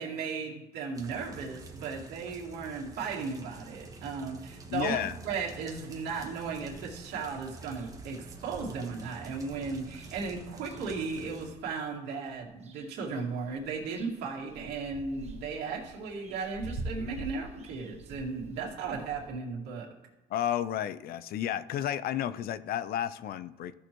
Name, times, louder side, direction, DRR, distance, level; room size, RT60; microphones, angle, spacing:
voice 1, 0.0-19.9, right 5 dB, 80° right, -3 dB, 2.3 m, -36 dB
sound 1, 0.9-11.5, right 3 dB, 20° right, 1.3 m, -48 dB
voice 2, 4.7-5.2 20.3-23.7, left 11 dB, 65° left, 15 dB, 0.5 m, -32 dB
sound 2, 6.5-7.0 7.4-7.5 7.7-11.7 12.3-13.1 13.4-19.3, right 2 dB, 40° right, 1.3 m, -46 dB
14.5 x 6.3 x 3.0 m, 1.0 s
cardioid pair, 110°, 17 cm